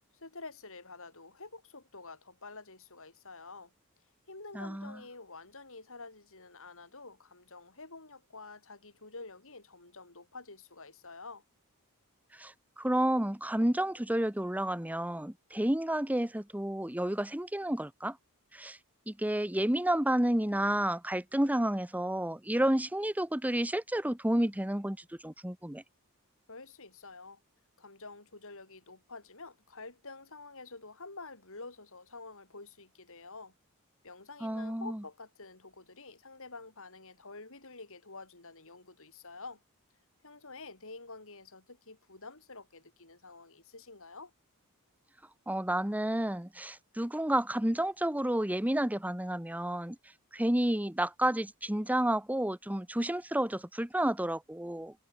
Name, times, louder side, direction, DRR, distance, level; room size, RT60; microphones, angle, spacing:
voice 1, 0.1-3.7 4.3-11.4 26.5-27.4 27.8-33.5 34.0-39.6 40.2-44.3, left 3 dB, 65° left, 7.6 m, -48 dB
voice 2, 4.5-5.0 12.4-18.2 18.5-18.8 19.1-25.0 25.2-25.8 34.4-35.0 45.5-50.0 50.3-54.9, right 1 dB, 5° right, 1.1 m, -30 dB
head